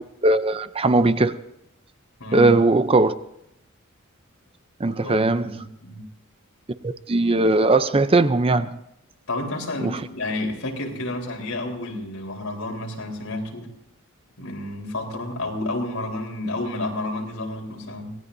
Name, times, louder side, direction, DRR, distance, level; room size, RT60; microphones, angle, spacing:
voice 1, 0.2-1.4 2.3-3.1 4.8-5.5 6.8-8.8 9.8-10.0, right 2 dB, 25° right, 0.6 m, -19 dB
voice 2, 2.2-2.6 4.9-6.0 9.3-13.7 14.4-18.1, left 2 dB, 85° left, 4.1 m, -30 dB
26.0 x 18.5 x 2.7 m
head